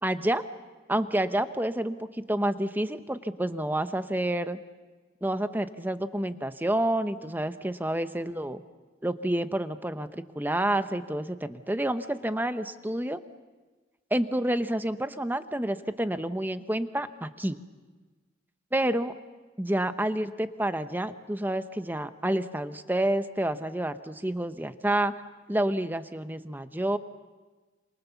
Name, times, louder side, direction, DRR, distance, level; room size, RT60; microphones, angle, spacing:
voice 1, 0.0-0.4 0.9-4.6 5.2-8.6 9.0-13.2 14.1-17.6 18.7-19.1 19.6-25.1 25.5-27.0, right 1 dB, 10° right, 10 dB, 0.9 m, -29 dB
27.0 x 27.0 x 7.1 m, 1.3 s
head